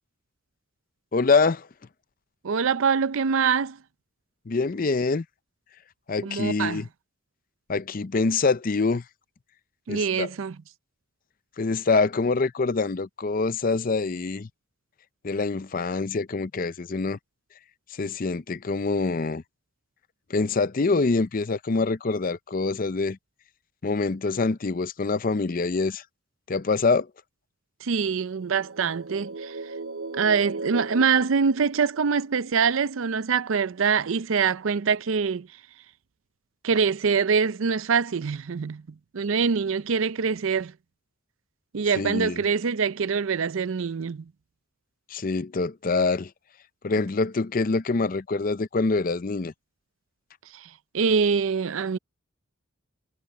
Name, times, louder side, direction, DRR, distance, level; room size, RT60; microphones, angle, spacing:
voice 1, 1.1-1.7 4.5-5.2 6.1-6.9 7.7-9.0 9.9-10.3 11.6-14.5 15.2-17.2 17.9-19.4 20.3-23.2 23.8-26.0 26.5-27.1 41.9-42.4 45.1-46.3 46.8-49.5, left 3 dB, 40° left, 0.5 m, -25 dB
voice 2, 2.4-3.8 6.2-6.8 9.9-10.6 27.8-29.6 30.1-35.5 36.6-38.8 39.1-40.7 41.7-44.2 50.5-50.7 50.9-52.0, right 5 dB, 70° right, 0.5 m, -24 dB
sound 1, 28.3-32.2, right 3 dB, 90° right, 1.9 m, -37 dB
head